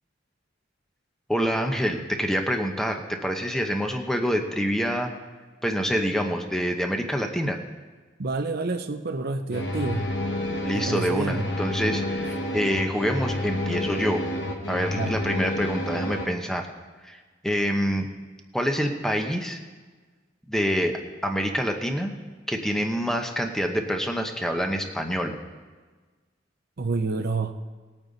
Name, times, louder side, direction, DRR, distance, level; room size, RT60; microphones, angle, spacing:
voice 1, 1.3-5.1 5.6-7.6 10.6-14.2 14.7-16.7 17.0-17.2 17.4-18.1 18.5-19.6 20.5-22.1 22.5-25.3, equal, ahead, 4 dB, 0.9 m, -26 dB
voice 2, 8.2-10.1 10.7-11.5 14.9-15.2 26.8-27.5, right 3 dB, 55° right, 8 dB, 0.6 m, -28 dB
sound 1, 9.5-16.2, left 1 dB, 65° left, 1.5 m, -29 dB
19.0 x 8.9 x 4.1 m, 1.4 s
head